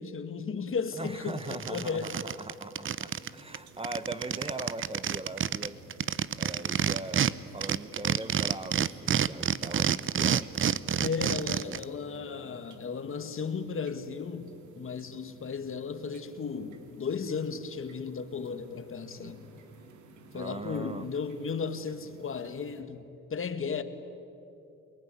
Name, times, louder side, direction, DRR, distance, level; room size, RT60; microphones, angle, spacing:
voice 1, 0.0-2.1 11.0-19.4 20.3-23.8, left 5 dB, 45° left, 1.7 m, -35 dB
voice 2, 1.0-5.8 6.4-10.5 11.7-11.8 19.2-19.4 20.3-21.1, right 2 dB, 20° right, 1.0 m, -40 dB
sound 1, 1.0-1.1 1.4-3.3 3.5-3.6 3.8-7.3 7.6-11.8, right 8 dB, 40° right, 0.7 m, -28 dB
sound 2, 3.1-22.8, right 3 dB, 70° right, 2.6 m, -54 dB
28.0 x 19.0 x 9.9 m
cardioid pair, 90°, 30 cm